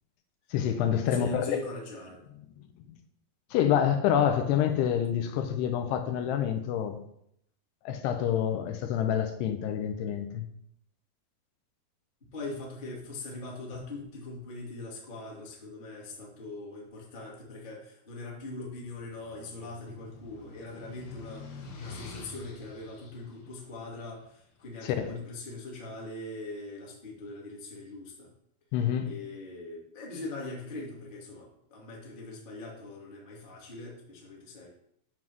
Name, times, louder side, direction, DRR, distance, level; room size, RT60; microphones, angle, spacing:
voice 1, 0.5-1.5 3.5-7.0 7.9-10.5 24.8-25.1 28.7-29.1, left 9 dB, 85° left, 2.9 m, -27 dB
voice 2, 1.0-2.2 12.3-28.3 29.0-34.7, left 2 dB, 30° left, 0.9 m, -41 dB
sound 1, 18.7-24.8, left 3 dB, 65° left, 3.0 m, -47 dB
9.8 x 3.7 x 6.2 m
omnidirectional pair, 4.7 m